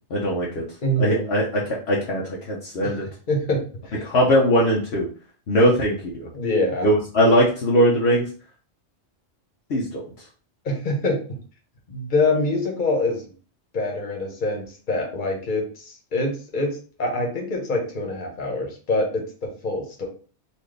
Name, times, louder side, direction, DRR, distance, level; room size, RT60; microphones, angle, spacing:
voice 1, 0.1-0.6 1.0-3.1 4.0-5.1 5.5-6.3 6.8-8.2 9.7-10.0, equal, 65° left, -3 dB, 1.1 m, -20 dB
voice 2, 0.8-1.3 2.8-2.9 3.3-4.0 6.3-6.9 10.6-11.2 11.9-13.3 13.7-20.0, left 2 dB, 45° left, 0 dB, 1.2 m, -25 dB
4.1 x 2.7 x 3.3 m, 0.38 s
omnidirectional pair, 1.2 m